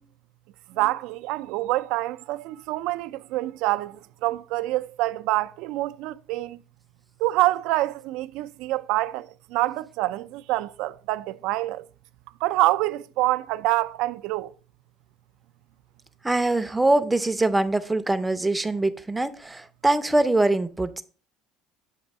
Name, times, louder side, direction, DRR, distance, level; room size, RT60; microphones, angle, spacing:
voice 1, 0.7-6.6 7.2-11.8 12.4-14.5, right 18 dB, 75° right, 0.3 m, -26 dB
voice 2, 16.2-21.0, right 2 dB, 10° right, 0.5 m, -23 dB
7.4 x 2.6 x 5.2 m
cardioid pair, 125°, 0 cm